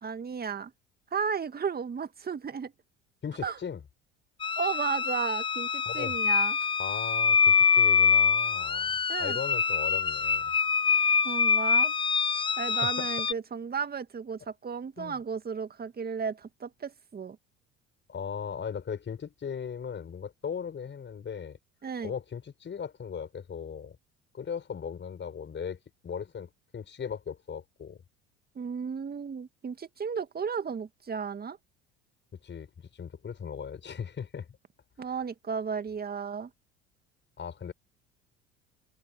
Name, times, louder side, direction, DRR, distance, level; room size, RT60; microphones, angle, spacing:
voice 1, 0.0-0.7 1.1-2.7 3.4-3.6 4.6-6.6 9.1-9.4 11.2-11.9 12.6-17.4 21.8-22.1 28.6-31.6 35.0-36.5, right 6 dB, 30° right, 2.1 m, -34 dB
voice 2, 3.2-3.8 5.9-6.2 6.8-10.5 12.7-13.1 15.0-15.2 18.1-21.6 22.0-24.0 24.3-28.0 32.3-34.5 35.0-35.1 37.4-37.7, left 7 dB, 35° left, 6.0 m, -38 dB
sound 1, 4.4-13.3, left 6 dB, 15° left, 0.5 m, -25 dB
hypercardioid pair, 65°, 33 cm